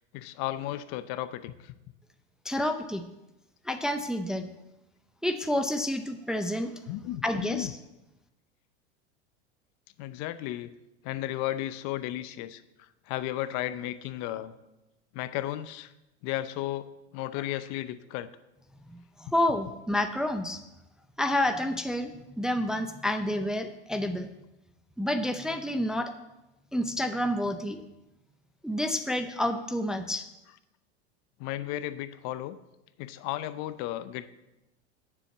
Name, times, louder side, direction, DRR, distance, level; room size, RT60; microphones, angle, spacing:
voice 1, 0.0-1.8 6.9-7.7 10.0-10.7 11.0-12.6 13.1-14.5 15.1-15.9 16.2-18.3 31.4-32.6 33.0-34.3, left 14 dB, 50° left, 13 dB, 0.7 m, -34 dB
voice 2, 2.4-3.0 3.7-4.5 5.2-6.7 7.2-7.7 18.9-20.6 21.2-24.3 25.0-26.1 26.7-27.8 28.6-30.3, left 1 dB, ahead, 7 dB, 0.5 m, -29 dB
7.2 x 7.0 x 7.2 m, 0.96 s
hypercardioid pair, 110°, 34 cm